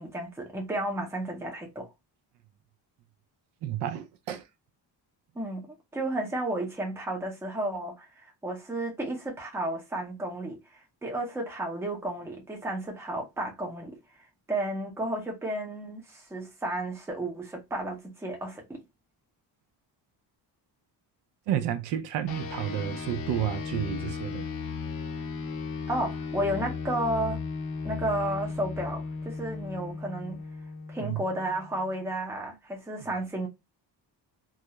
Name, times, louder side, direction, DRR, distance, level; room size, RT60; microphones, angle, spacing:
voice 1, 0.0-1.9 5.4-5.7 5.9-14.0 14.5-18.8 25.9-27.4 27.8-30.4 30.9-33.5, right 1 dB, 5° right, 0.5 m, -32 dB
voice 2, 3.6-4.5 21.5-24.5 31.0-31.2, right 10 dB, 75° right, 0.5 m, -31 dB
sound 1, 22.3-32.0, left 5 dB, 55° left, 0.5 m, -36 dB
2.4 x 2.0 x 2.8 m
cardioid pair, 170°, 43 cm